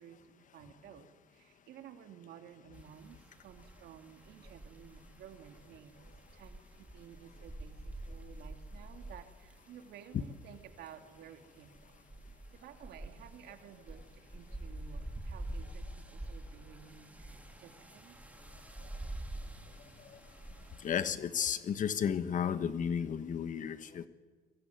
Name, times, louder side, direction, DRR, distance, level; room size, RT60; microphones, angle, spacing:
voice 1, 0.0-18.2, right 9 dB, 70° right, 6 dB, 2.8 m, -54 dB
sound 1, 2.7-21.1, right 1 dB, 10° right, 2.9 m, -47 dB
voice 2, 20.8-24.1, left 8 dB, 50° left, 12 dB, 1.5 m, -33 dB
25.5 x 22.5 x 9.5 m, 1.4 s
cardioid pair, 110°, 17 cm